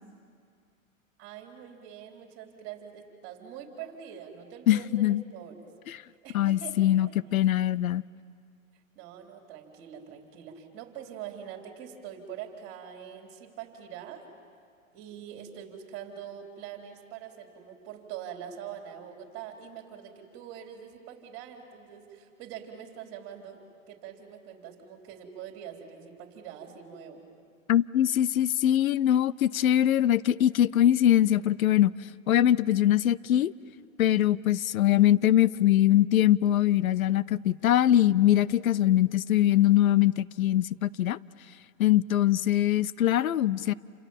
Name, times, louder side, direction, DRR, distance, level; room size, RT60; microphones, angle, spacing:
voice 1, 1.2-7.6 8.7-14.2 14.9-23.6 23.9-27.3, right 9 dB, 30° right, 4.1 m, -44 dB
voice 2, 4.7-5.2 6.3-8.0 27.7-31.9 32.3-33.5 34.0-41.2 41.8-43.7, left 12 dB, 80° left, 0.7 m, -22 dB
28.5 x 28.5 x 7.5 m
hypercardioid pair, 135°, 41 cm